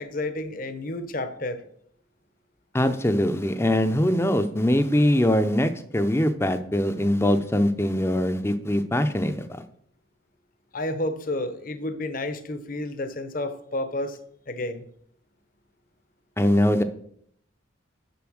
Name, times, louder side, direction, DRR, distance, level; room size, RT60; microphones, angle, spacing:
voice 1, 0.0-1.6 10.7-14.2 14.5-14.8, left 1 dB, 45° left, 10 dB, 0.8 m, -30 dB
voice 2, 2.7-9.5 16.4-16.8, left 1 dB, 15° left, 10 dB, 0.6 m, -22 dB
7.0 x 6.9 x 6.3 m, 0.67 s
head